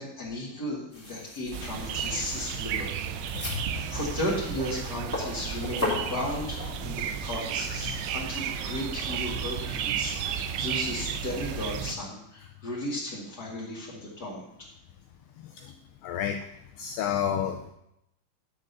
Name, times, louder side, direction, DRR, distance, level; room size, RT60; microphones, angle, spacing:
voice 1, 0.0-2.9 3.5-14.4, left 1 dB, 45° left, -5 dB, 1.2 m, -35 dB
sound 1, 0.9-6.2, left 2 dB, 10° left, 0.9 m, -37 dB
sound 2, 1.5-12.0, right 8 dB, 85° right, 2.9 m, -33 dB
voice 2, 3.5-3.9 5.6-5.7 6.0-6.1 6.7-6.8 7.8-8.0 15.6-15.7 16.0-16.4 16.8-17.7, left 9 dB, 85° left, 4 dB, 2.3 m, -31 dB
10.5 x 3.8 x 6.6 m, 0.80 s
omnidirectional pair, 5.0 m